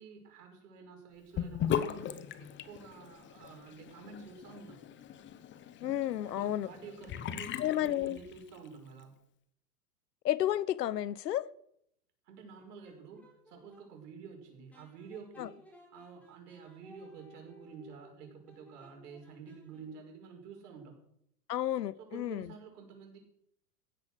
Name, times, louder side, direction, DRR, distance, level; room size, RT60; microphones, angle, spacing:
voice 1, 0.0-4.8 6.3-9.1 12.2-15.6 15.9-21.0 22.0-23.2, right 5 dB, 70° right, 5.7 m, -50 dB
Sink (filling or washing) / Bathtub (filling or washing), 1.4-8.7, left 9 dB, 25° left, 0.9 m, -39 dB
voice 2, 5.8-6.7 7.6-8.2 10.2-11.5 15.4-15.5 21.5-22.5, left 12 dB, 90° left, 0.8 m, -31 dB
sound 1, 12.5-13.9 14.7-20.2, equal, 5° left, 4.4 m, -58 dB
15.5 x 9.6 x 6.5 m
hypercardioid pair, 125°, 48 cm